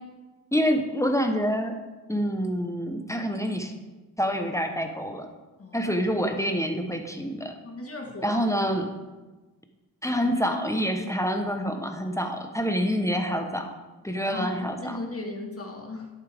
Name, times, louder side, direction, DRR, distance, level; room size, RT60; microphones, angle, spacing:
voice 1, 0.5-1.8 2.1-3.7 4.2-5.3 5.7-7.5 8.2-8.9 10.0-13.7 14.0-15.0, equal, 10° left, 5 dB, 1.0 m, -27 dB
voice 2, 5.6-5.9 7.6-8.4 14.3-16.1, left 2 dB, 35° left, 1 dB, 1.6 m, -37 dB
10.5 x 8.8 x 3.5 m, 1.2 s
cardioid pair, 85°, 39 cm